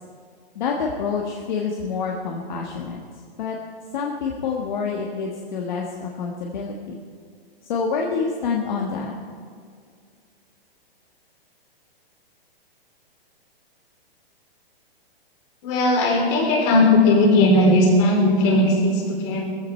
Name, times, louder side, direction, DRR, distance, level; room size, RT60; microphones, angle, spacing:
voice 1, 0.5-3.0 3.4-3.6 3.9-7.0 7.6-9.1, left 5 dB, 50° left, 0 dB, 1.5 m, -27 dB
voice 2, 15.6-19.5, left 2 dB, 30° left, 1 dB, 3.3 m, -17 dB
17.0 x 15.0 x 4.4 m, 2.1 s
hypercardioid pair, 160°, 30 cm